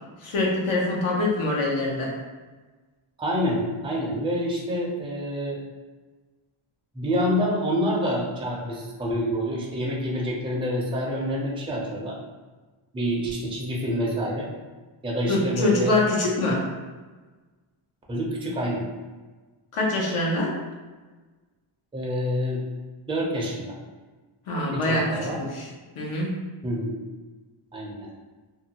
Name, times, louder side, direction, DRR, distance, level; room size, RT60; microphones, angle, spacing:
voice 1, 0.2-2.1 15.3-16.6 19.7-20.5 24.5-25.7 26.0-26.4, left 2 dB, 75° left, -3 dB, 0.7 m, -24 dB
voice 2, 3.2-5.6 6.9-12.2 12.9-14.5 15.0-15.9 16.5-16.6 18.1-18.9 21.9-22.6 23.1-23.8 24.7-25.4 26.6-27.0 27.7-28.1, equal, 10° right, -3 dB, 0.4 m, -27 dB
2.6 x 2.2 x 2.8 m, 1.3 s
wide cardioid pair, 110°, 50 cm